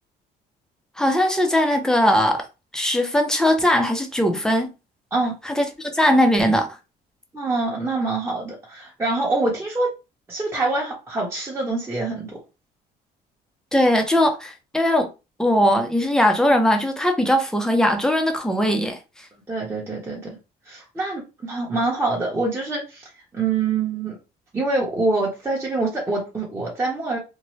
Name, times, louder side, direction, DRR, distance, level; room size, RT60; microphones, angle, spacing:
voice 1, 1.0-2.4 2.7-4.7 5.5-6.7 13.7-15.1 15.4-19.0, equal, 5° left, 0.6 m, -19 dB
voice 2, 7.3-9.9 10.3-12.4 19.5-20.4 20.7-23.0 23.3-24.1 24.5-27.2, right 3 dB, 15° right, 0.9 m, -25 dB
2.7 x 2.1 x 3.1 m
cardioid pair, 110°, 17 cm